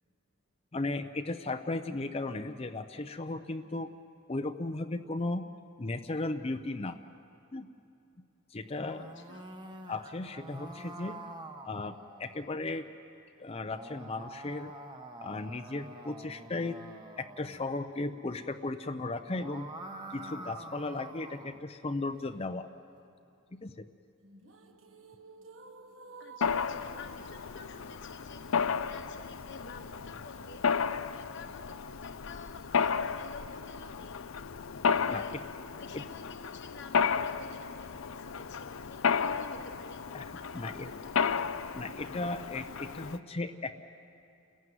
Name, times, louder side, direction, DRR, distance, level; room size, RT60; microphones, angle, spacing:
voice 1, 0.7-3.9 4.3-5.4 5.8-7.0 7.5-7.7 8.5-9.1 9.9-11.2 11.6-12.8 13.4-14.7 15.2-16.8 17.2-19.7 20.1-22.7 23.6-23.8 35.1-35.4 35.9-36.0 40.1-40.2 40.5-40.9 41.7-43.8, left 2 dB, 30° left, 8 dB, 0.6 m, -36 dB
sound 1, 8.6-12.5 13.5-17.7 19.1-21.6, right 1 dB, 20° right, 1.1 m, -47 dB
voice 2, 9.0-9.4 26.2-28.5 28.8-30.6 31.1-34.2 35.0-35.3 35.7-40.0 40.3-41.3, left 4 dB, 55° left, 4 dB, 1.1 m, -50 dB
sound 2, 24.2-30.2, right 3 dB, 70° right, 1.5 m, -53 dB
Mechanisms, 26.4-43.2, left 6 dB, 75° left, 0.6 m, -33 dB
29.0 x 15.5 x 9.3 m, 2.6 s
head